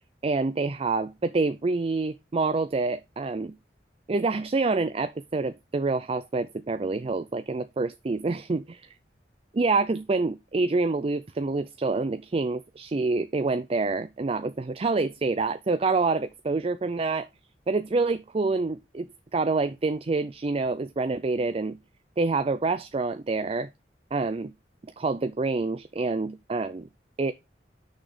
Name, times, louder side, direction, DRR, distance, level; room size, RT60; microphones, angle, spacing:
voice 1, 0.2-3.5 4.1-8.8 9.6-17.3 17.7-21.8 22.2-23.7 24.1-24.5 25.0-26.9 27.2-27.3, right 3 dB, 35° right, 0.4 m, -27 dB
6.4 x 6.1 x 5.0 m
head